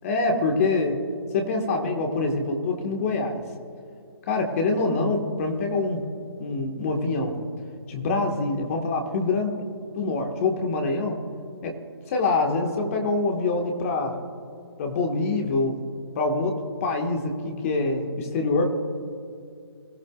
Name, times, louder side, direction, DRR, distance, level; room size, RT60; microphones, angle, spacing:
voice 1, 0.0-1.0 1.3-3.4 4.3-6.1 6.4-7.4 7.9-9.6 9.9-11.2 11.6-11.8 12.1-14.1 14.8-15.8 16.1-18.6, left 3 dB, 35° left, 3 dB, 1.7 m, -25 dB
22.5 x 14.5 x 2.5 m, 2.4 s
figure-of-eight pair, 150°, 14 cm